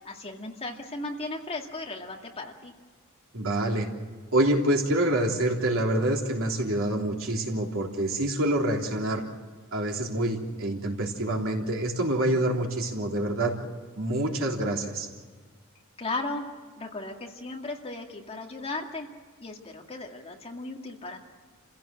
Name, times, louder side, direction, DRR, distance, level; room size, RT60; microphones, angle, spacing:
voice 1, 0.0-2.7 16.0-19.1 19.4-21.2, left 2 dB, 30° left, 1 dB, 2.2 m, -36 dB
voice 2, 3.3-3.9 4.3-9.2 9.7-13.5 14.0-15.1, right 1 dB, 65° right, 1 dB, 3.5 m, -26 dB
29.0 x 16.0 x 7.7 m, 1.5 s
head